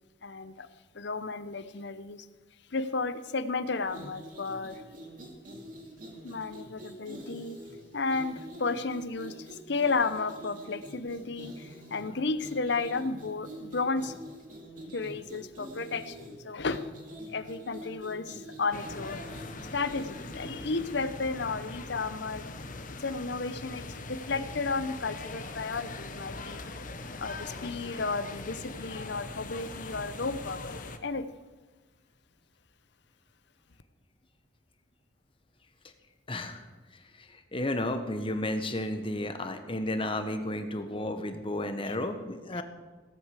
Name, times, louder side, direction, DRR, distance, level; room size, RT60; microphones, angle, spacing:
voice 1, 0.2-0.7 0.9-2.3 2.7-4.8 6.2-7.6 7.9-14.2 14.9-16.8 17.3-19.2 19.7-22.5 22.9-26.7 27.1-31.3 41.9-42.0 42.5-42.6, left 3 dB, 60° left, 13 dB, 0.8 m, -33 dB
sound 1, 3.8-20.9, equal, 45° right, 2.7 m, -46 dB
sound 2, 18.7-31.0, left 3 dB, 45° left, 1.0 m, -41 dB
voice 2, 36.3-36.6 37.2-37.3 37.5-42.6, left 1 dB, 30° left, 7 dB, 1.3 m, -32 dB
17.0 x 8.2 x 8.2 m, 1.3 s
head